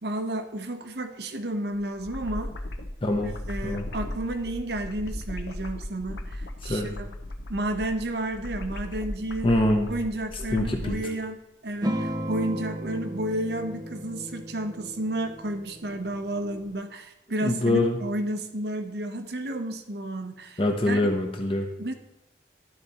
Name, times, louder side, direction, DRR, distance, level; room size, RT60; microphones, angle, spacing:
voice 1, 0.0-2.5 3.5-7.1 7.5-9.5 9.9-11.4 11.6-20.6 20.9-21.0 21.8-21.9, right 1 dB, 65° right, 7 dB, 0.8 m, -31 dB
sound 1, 1.7-11.0, left 1 dB, 85° left, 0.8 m, -37 dB
voice 2, 3.0-3.3 3.6-3.9 6.6-6.9 9.4-9.9 10.3-11.0 17.4-18.0 20.6-21.7, left 1 dB, 30° left, 2 dB, 0.7 m, -24 dB
sound 2, 11.8-16.7, right 1 dB, 20° right, 0.5 m, -35 dB
12.0 x 4.1 x 4.1 m, 0.87 s
head